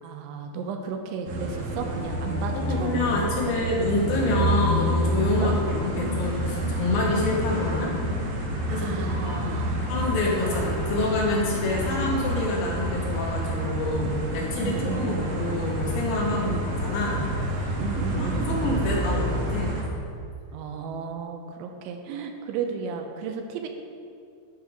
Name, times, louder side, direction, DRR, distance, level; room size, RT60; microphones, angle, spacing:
voice 1, 0.0-3.0 3.5-3.6 5.4-5.6 8.7-9.8 10.5-10.7 14.6-15.3 16.3-16.7 17.8-18.8 20.5-23.7, right 6 dB, 90° right, 4 dB, 3.2 m, -33 dB
sound 1, 1.2-19.8, equal, 65° right, 1.7 m, -28 dB
Wind instrument woodwind instrument, 1.8-6.5, right 2 dB, 45° right, 2.8 m, -43 dB
voice 2, 2.7-7.9 8.7-9.6 9.9-16.5 16.8-17.3 17.6-17.7 18.2-19.8, left 2 dB, 75° left, -3 dB, 3.9 m, -27 dB
11.5 x 8.8 x 3.7 m, 2.4 s
omnidirectional pair, 5.3 m